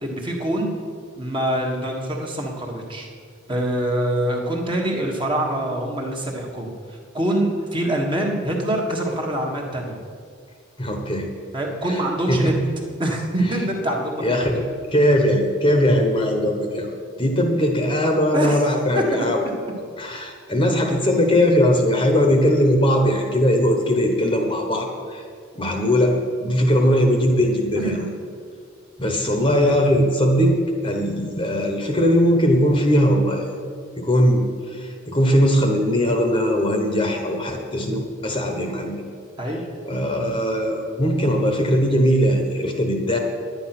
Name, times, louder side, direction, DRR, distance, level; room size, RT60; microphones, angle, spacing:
voice 1, 0.0-0.7 1.2-3.1 3.5-10.0 11.5-12.5 13.0-14.4 18.3-18.6 18.9-19.3 27.8-28.1 39.4-39.7, right 1 dB, 25° right, -1 dB, 1.5 m, -25 dB
voice 2, 10.8-11.3 11.9-12.0 12.3-12.5 14.2-14.6 14.9-16.9 17.2-19.4 20.0-25.2 25.5-28.0 29.0-30.6 30.8-33.5 34.0-34.4 34.7-39.0 39.9-43.2, equal, 25° left, 2 dB, 1.1 m, -20 dB
10.5 x 9.7 x 6.0 m, 2.2 s
head